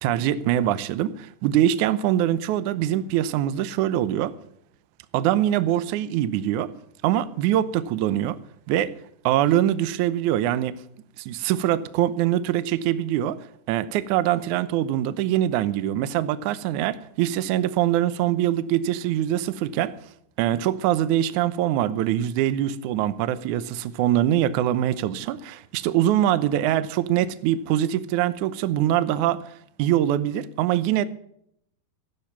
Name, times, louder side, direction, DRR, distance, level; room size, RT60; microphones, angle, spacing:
voice 1, 0.0-4.3 5.1-6.7 7.0-8.4 8.7-8.9 9.2-10.8 11.2-13.4 13.7-20.0 20.4-29.4 29.8-31.0, right 12 dB, 80° right, 1.7 m, -23 dB
15.0 x 12.0 x 5.9 m
omnidirectional pair, 4.5 m